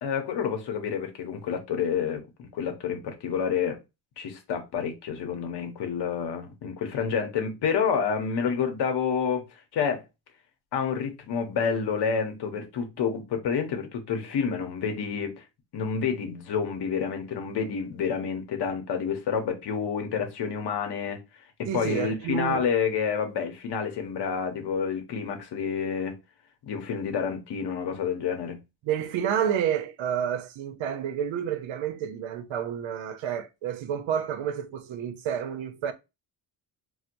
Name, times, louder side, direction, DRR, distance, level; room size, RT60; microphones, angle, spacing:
voice 1, 0.0-3.8 4.2-9.5 9.7-10.0 10.7-15.4 15.7-21.2 21.7-26.1 26.6-28.6, left 6 dB, 60° left, 0.8 m, -29 dB
voice 2, 21.7-22.7 28.8-35.9, right 9 dB, 80° right, 0.6 m, -29 dB
4.4 x 2.1 x 2.5 m
wide cardioid pair, 180°, 46 cm